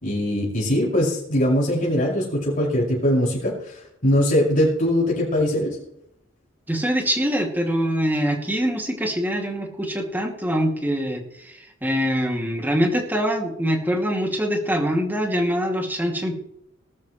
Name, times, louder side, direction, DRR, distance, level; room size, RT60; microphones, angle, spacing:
voice 1, 0.0-3.8 4.0-5.8, equal, 45° left, -5 dB, 5.9 m, -21 dB
voice 2, 6.7-16.4, equal, 10° right, 1 dB, 2.5 m, -24 dB
20.0 x 12.5 x 3.2 m, 0.77 s
head